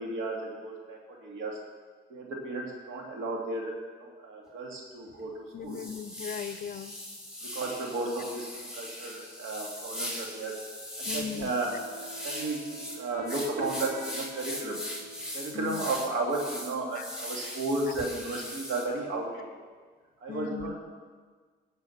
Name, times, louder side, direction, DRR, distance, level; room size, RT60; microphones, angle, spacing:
voice 1, 0.0-1.6 2.1-3.7 4.0-5.8 7.5-10.5 11.0-14.8 15.3-19.4 20.2-20.7, right 2 dB, 80° right, -1 dB, 2.5 m, -34 dB
sound 1, 4.5-4.6 5.1-5.2 5.7-18.8, left 1 dB, 5° right, 2.7 m, -40 dB
voice 2, 5.5-6.9 11.1-11.5 15.5-15.8 17.0-17.1 20.3-20.7, left 7 dB, 45° left, 12 dB, 0.6 m, -37 dB
Wind instrument woodwind instrument, 11.4-16.2, right 4 dB, 50° right, 1.0 m, -47 dB
16.5 x 5.6 x 5.9 m, 1.5 s
cardioid pair, 90°, 20 cm